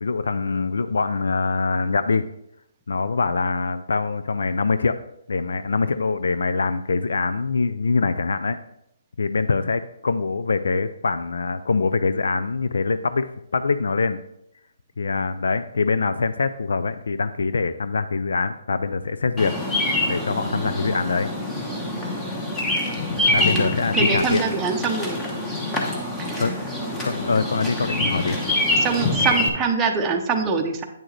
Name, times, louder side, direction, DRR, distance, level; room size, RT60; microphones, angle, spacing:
voice 1, 0.0-2.2 2.9-5.0 5.3-8.6 9.2-14.2 15.0-19.6 20.1-21.3 23.3-24.4 26.4-26.5 27.0-28.4, left 4 dB, 80° left, 12 dB, 0.4 m, -24 dB
Bird vocalization bird call bird song, 19.4-29.5, left 1 dB, 10° left, 1.0 m, -25 dB
voice 2, 23.4-25.2 26.2-26.6 28.8-30.8, right 5 dB, 10° right, 1 dB, 0.7 m, -24 dB
8.8 x 6.2 x 3.2 m, 0.79 s
hypercardioid pair, 165°, 0 cm